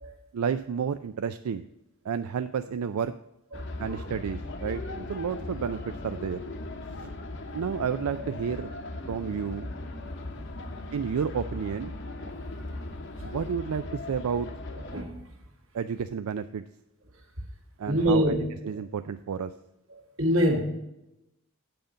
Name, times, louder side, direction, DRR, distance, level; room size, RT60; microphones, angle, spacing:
voice 1, 0.3-1.7 2.0-3.1 3.8-6.4 7.0-7.1 7.5-8.7 9.1-9.7 10.9-11.9 13.2-14.5 15.7-16.6 17.8-18.3 18.6-19.5, right 7 dB, 90° right, 10 dB, 0.4 m, -31 dB
sound 1, 3.5-15.0, left 2 dB, 55° left, 0.9 m, -38 dB
voice 2, 3.5-4.1 12.2-12.4 13.2-13.3 14.8-15.3 17.1-17.2 17.9-18.4 18.7-18.8 19.9-20.6, equal, 65° right, 2 dB, 1.9 m, -27 dB
7.7 x 5.2 x 6.9 m, 0.90 s
head